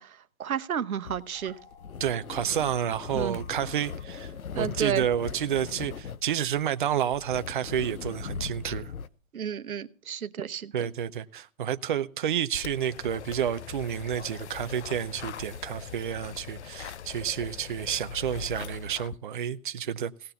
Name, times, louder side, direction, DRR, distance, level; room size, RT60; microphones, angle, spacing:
voice 1, 0.0-1.6 3.1-3.4 4.5-5.0 9.3-10.9, right 8 dB, 85° right, 1.0 m, -32 dB
sound 1, 1.0-9.1, left 6 dB, 85° left, 1.0 m, -39 dB
sound 2, 1.3-5.3, left 4 dB, 15° left, 0.9 m, -53 dB
voice 2, 2.0-8.9 10.7-20.1, right 9 dB, 40° right, 0.6 m, -30 dB
sound 3, 12.5-19.2, left 8 dB, 55° left, 0.6 m, -41 dB
17.5 x 6.6 x 6.9 m
hypercardioid pair, 155°, 42 cm